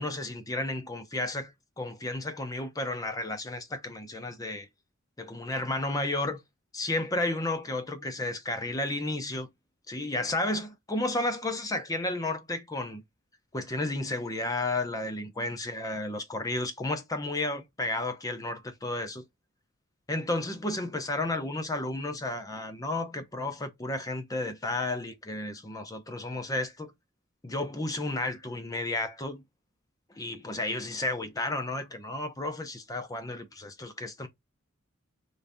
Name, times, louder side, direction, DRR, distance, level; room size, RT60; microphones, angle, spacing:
voice 1, 0.0-1.5 1.8-4.7 5.2-6.4 6.7-9.5 9.9-13.0 13.5-19.2 20.1-26.9 27.4-29.4 30.2-34.3, left 2 dB, 15° left, 0.5 m, -32 dB
3.9 x 3.4 x 2.6 m
head